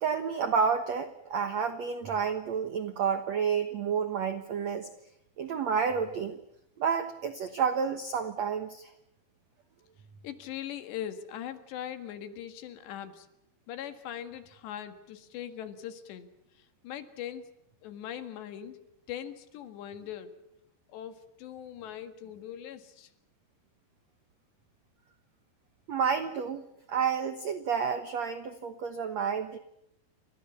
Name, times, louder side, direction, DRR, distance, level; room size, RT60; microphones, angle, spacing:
voice 1, 0.0-4.9 5.4-6.4 6.8-8.9 25.9-29.6, right 6 dB, 85° right, 9 dB, 1.5 m, -30 dB
voice 2, 10.2-13.3 13.7-16.3 16.8-17.5 17.8-18.8 19.1-20.3 20.9-23.1, left 10 dB, 75° left, 9 dB, 4.0 m, -40 dB
29.0 x 25.5 x 7.2 m, 0.81 s
omnidirectional pair, 5.1 m